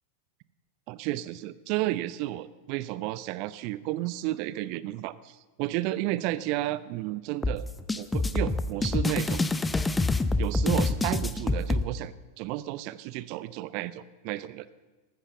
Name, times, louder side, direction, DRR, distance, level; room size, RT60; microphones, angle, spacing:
voice 1, 0.9-7.7 8.0-9.5 10.4-14.7, right 16 dB, 45° right, 17 dB, 0.6 m, -32 dB
sound 1, 7.4-11.8, left 2 dB, 10° left, 0.7 m, -26 dB
14.0 x 13.0 x 6.8 m, 1.3 s
figure-of-eight pair, 90°, 0 cm